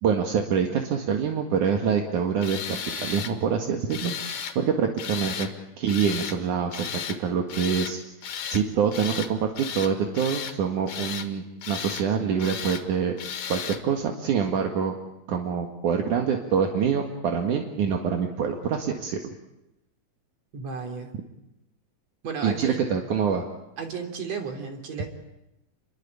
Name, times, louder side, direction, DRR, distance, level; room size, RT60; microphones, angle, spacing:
voice 1, 0.0-4.1 4.6-5.5 5.8-6.9 7.2-8.0 8.5-13.1 13.5-14.9 15.3-19.2 22.4-23.5, right 7 dB, 70° right, 3 dB, 3.4 m, -25 dB
Tools, 2.4-3.3 3.9-4.6 5.0-5.5 5.9-6.4 6.7-7.2 7.5-7.9 8.2-8.6 8.9-9.3 9.6-10.6 10.9-11.3 11.6-12.1 12.4-12.8 13.2-13.8, left 7 dB, 85° left, 3.5 m, -34 dB
voice 2, 20.5-21.1 22.2-22.8 23.8-25.1, right 5 dB, 55° right, 5 dB, 4.7 m, -33 dB
29.5 x 22.5 x 8.6 m, 0.91 s
omnidirectional pair, 3.6 m